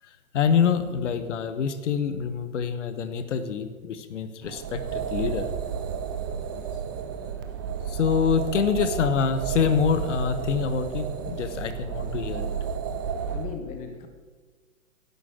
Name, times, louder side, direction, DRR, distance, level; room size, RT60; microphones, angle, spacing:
voice 1, 0.3-5.5 7.9-12.5, left 7 dB, 60° left, 10 dB, 1.3 m, -26 dB
sound 1, 4.4-13.5, right 7 dB, 15° right, 0.4 m, -32 dB
voice 2, 6.5-6.8 13.3-14.1, left 6 dB, 20° left, 6 dB, 1.1 m, -39 dB
11.5 x 9.6 x 7.7 m, 1.4 s
hypercardioid pair, 125°, 41 cm